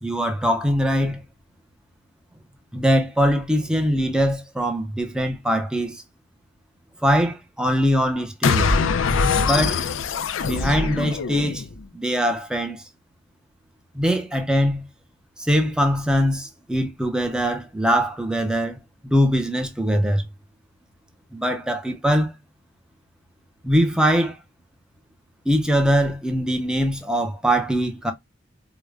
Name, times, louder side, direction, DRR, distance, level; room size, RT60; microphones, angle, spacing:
voice 1, 0.0-1.2 2.7-6.0 7.0-8.7 9.3-9.8 10.4-11.7 11.9-12.8 13.9-14.8 15.5-18.8 19.0-20.2 21.3-22.3 23.6-24.4 25.5-28.1, equal, 5° right, 0.5 m, -22 dB
sound 1, 8.4-11.8, left 5 dB, 80° left, 0.4 m, -22 dB
4.8 x 2.1 x 2.3 m
head